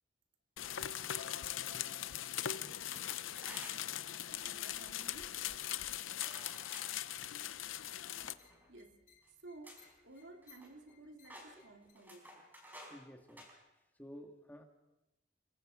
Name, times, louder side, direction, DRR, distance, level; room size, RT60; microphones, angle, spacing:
sound 1, 0.6-8.3, left 11 dB, 90° left, 0.7 m, -40 dB
sound 2, 3.3-3.9 4.7-5.0 6.2-6.9 8.2-8.7 9.2-9.3 9.6-9.9 10.2-10.9 11.2-13.0 13.3-13.5, equal, 10° right, 4.7 m, -53 dB
voice 1, 4.1-5.4 8.7-12.4, right 2 dB, 70° right, 2.3 m, -55 dB
sound 3, 7.4-11.9, left 7 dB, 40° left, 2.8 m, -67 dB
voice 2, 12.9-13.5 14.0-14.6, equal, 10° left, 1.7 m, -52 dB
29.5 x 22.0 x 4.9 m
head